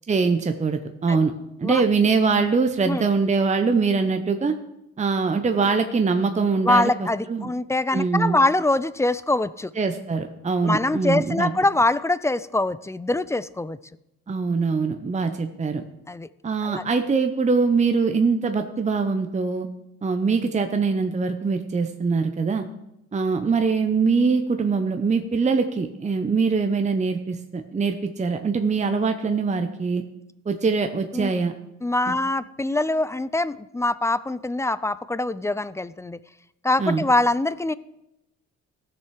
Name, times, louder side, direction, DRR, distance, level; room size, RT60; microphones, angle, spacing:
voice 1, 0.1-1.3 1.6-4.5 5.0-7.5 7.9-8.4 9.8-11.5 14.3-15.8 16.4-19.7 20.0-22.7 23.1-30.0 30.5-31.5 32.1-32.2 36.8-37.0, right 4 dB, 25° right, 7 dB, 0.8 m, -23 dB
voice 2, 6.6-9.7 10.6-13.8 16.1-16.3 16.6-16.8 31.1-31.3 31.8-36.2 36.6-37.7, left 2 dB, 10° left, 17 dB, 0.3 m, -23 dB
15.5 x 6.7 x 4.8 m, 0.88 s
cardioid pair, 90°, 30 cm